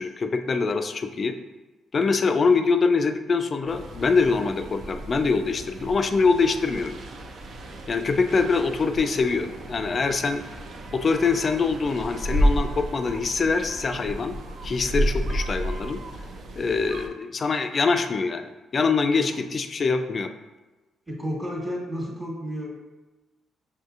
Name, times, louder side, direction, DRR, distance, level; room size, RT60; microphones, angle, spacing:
voice 1, 0.0-1.3 1.9-6.9 7.9-10.5 10.9-14.3 14.6-16.0 16.6-20.3, left 4 dB, 40° left, 7 dB, 0.3 m, -24 dB
sound 1, 3.7-17.1, equal, 60° right, 0.5 m, -31 dB
voice 2, 21.1-22.7, equal, 20° right, -5 dB, 1.2 m, -31 dB
6.6 x 2.6 x 2.4 m, 1.2 s
cardioid pair, 90°, 0 cm